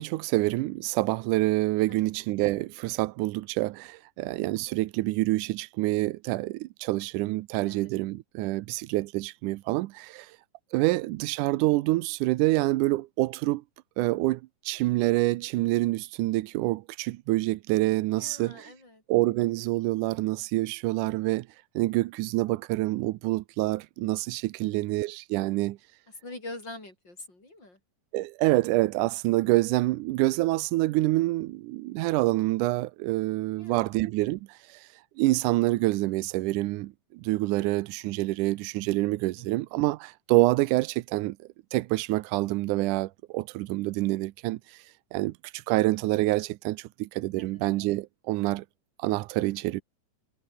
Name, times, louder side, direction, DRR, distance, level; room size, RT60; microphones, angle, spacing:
voice 1, 0.0-10.3 10.7-13.6 14.0-14.4 14.7-18.7 19.1-21.5 21.8-25.8 28.1-34.9 35.2-41.4 41.7-44.8 45.1-48.7 49.0-49.8, right 19 dB, 85° right, 2.1 m, -27 dB
voice 2, 18.1-19.0 24.6-24.9 26.1-27.8 33.6-33.9 39.4-39.6 47.4-47.6, left 2 dB, 35° left, 7.2 m, -44 dB
omnidirectional pair, 3.7 m